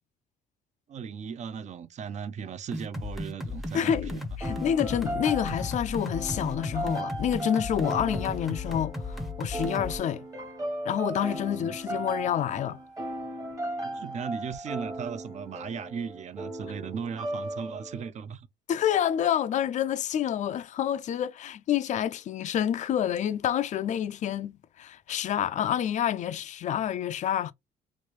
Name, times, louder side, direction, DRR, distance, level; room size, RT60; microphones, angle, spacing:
voice 1, 0.9-4.4 11.4-11.8 13.8-18.5, right 7 dB, 45° right, 0.6 m, -37 dB
sound 1, 2.7-10.0, left 2 dB, ahead, 0.7 m, -35 dB
voice 2, 3.7-10.3 10.8-12.8 18.7-27.5, left 10 dB, 45° left, 0.4 m, -28 dB
sound 2, 4.4-18.1, right 1 dB, 20° right, 1.1 m, -37 dB
3.2 x 2.6 x 3.1 m
cardioid pair, 110°, 17 cm